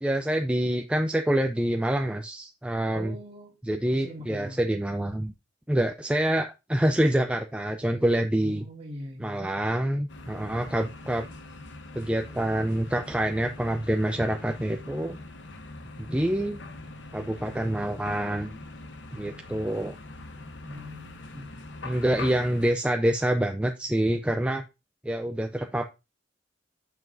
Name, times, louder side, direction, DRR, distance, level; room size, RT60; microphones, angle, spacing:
voice 1, 0.0-3.2 3.6-5.3 5.7-8.6 9.2-11.3 11.9-15.2 16.0-16.6 17.1-18.6 19.1-19.9 21.8-24.6 25.0-25.9, right 1 dB, 5° right, 0.4 m, -26 dB
voice 2, 2.9-3.6 3.9-4.7 8.3-9.4 20.6-21.6, equal, 35° right, 2.2 m, -42 dB
sound 1, 10.1-22.7, left 2 dB, 75° left, 0.9 m, -43 dB
7.1 x 6.0 x 2.5 m
head